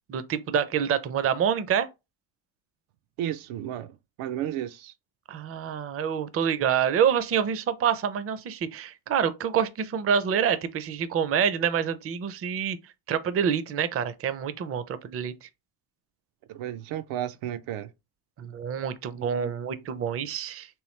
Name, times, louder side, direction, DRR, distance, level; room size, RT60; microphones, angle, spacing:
voice 1, 0.1-1.9 5.3-12.8 13.1-15.3 18.4-20.7, right 8 dB, 30° right, 0.4 m, -27 dB
voice 2, 3.2-4.9 16.5-17.9 19.2-19.5, right 11 dB, 80° right, 0.6 m, -33 dB
3.3 x 3.1 x 3.1 m
cardioid pair, 85°, 49 cm